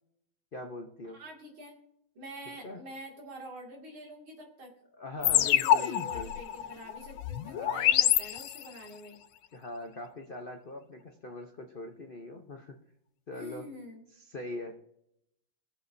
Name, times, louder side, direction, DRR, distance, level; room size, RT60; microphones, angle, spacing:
voice 1, 0.5-1.2 2.5-2.8 5.0-6.3 7.4-8.0 9.5-12.8 13.3-13.7 14.1-14.8, left 2 dB, 55° left, 3 dB, 0.6 m, -42 dB
voice 2, 1.1-1.8 2.1-4.7 5.2-9.2 13.3-14.0, right 1 dB, 75° right, 0 dB, 3.1 m, -46 dB
sound 1, 5.2-8.9, left 11 dB, 80° left, 1.4 m, -27 dB
22.0 x 7.5 x 2.7 m, 0.79 s
omnidirectional pair, 2.3 m